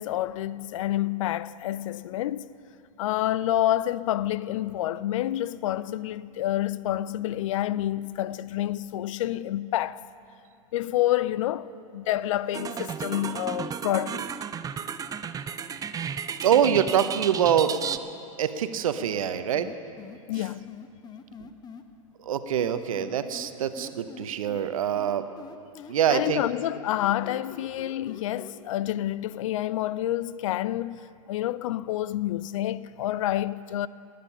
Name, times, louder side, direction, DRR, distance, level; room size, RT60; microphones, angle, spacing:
voice 1, 0.0-2.6 3.0-10.0 10.7-14.3 20.3-20.7 26.1-33.9, left 13 dB, 65° left, 0.4 m, -28 dB
sound 1, 12.5-18.0, right 7 dB, 20° right, 0.5 m, -33 dB
voice 2, 16.4-17.7 18.4-19.7 22.3-25.2 25.9-26.4, right 9 dB, 75° right, 0.8 m, -24 dB
sound 2, 19.5-21.8 22.6-24.6 24.9-28.5, left 6 dB, 25° left, 0.9 m, -45 dB
18.5 x 9.3 x 5.6 m
hypercardioid pair, 95°, 18 cm